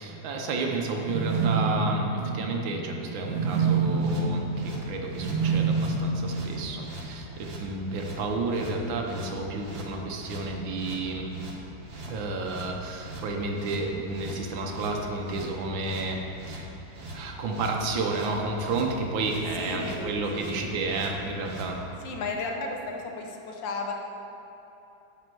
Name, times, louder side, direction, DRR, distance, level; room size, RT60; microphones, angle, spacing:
voice 1, 0.0-11.3 12.1-16.2 16.5-16.7 17.1-21.8, right 3 dB, 90° right, 2 dB, 1.7 m, -31 dB
sound 1, 0.9-7.0, right 4 dB, 65° right, 1.4 m, -28 dB
sound 2, 3.9-21.7, right 1 dB, 40° right, 1.0 m, -42 dB
voice 2, 19.6-20.7 22.0-23.9, left 3 dB, 75° left, 2 dB, 1.6 m, -35 dB
9.9 x 4.3 x 7.6 m, 2.9 s
omnidirectional pair, 2.1 m